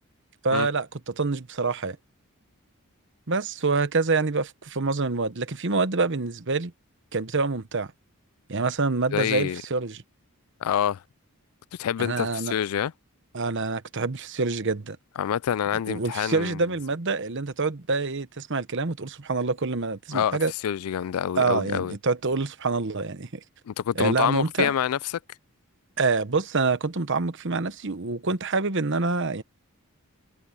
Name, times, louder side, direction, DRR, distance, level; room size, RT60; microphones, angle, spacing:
voice 1, 0.4-2.0 3.3-6.7 7.1-7.9 8.5-10.0 12.0-12.5 13.3-15.0 15.9-20.5 21.3-23.3 23.9-24.7 26.0-29.4, right 3 dB, 55° right, 1.1 m, -26 dB
voice 2, 9.1-9.6 10.6-11.0 11.8-12.9 15.2-16.6 20.1-20.4 20.6-21.9 23.7-25.0, left 9 dB, 75° left, 0.3 m, -26 dB
head